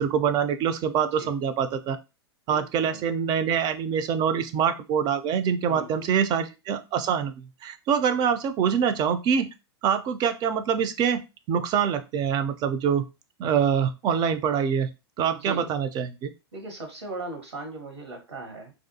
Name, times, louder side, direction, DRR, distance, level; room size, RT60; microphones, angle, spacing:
voice 1, 0.0-2.0 2.5-9.5 9.8-11.2 11.5-13.0 13.4-14.9 15.2-16.3, right 7 dB, 30° right, 10 dB, 0.3 m, -25 dB
voice 2, 2.5-3.2 5.7-6.1 15.2-15.7 16.5-18.7, right 2 dB, 85° right, 2 dB, 1.1 m, -39 dB
2.5 x 2.2 x 2.6 m, 0.27 s
hypercardioid pair, 105°, 14 cm